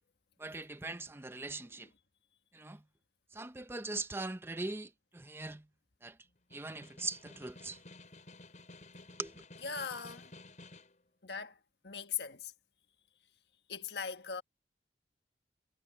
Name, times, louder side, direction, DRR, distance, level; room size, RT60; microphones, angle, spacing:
voice 1, 0.4-1.9 2.5-2.8 3.3-5.6 6.0-6.1 6.5-7.8 9.2-9.3, right 3 dB, 15° right, 0.6 m, -41 dB
Snare drum, 6.4-11.0, left 2 dB, 45° left, 6.7 m, -54 dB
voice 2, 9.6-10.3 11.2-11.6 11.8-12.5 13.7-14.4, left 6 dB, 70° left, 1.5 m, -40 dB
head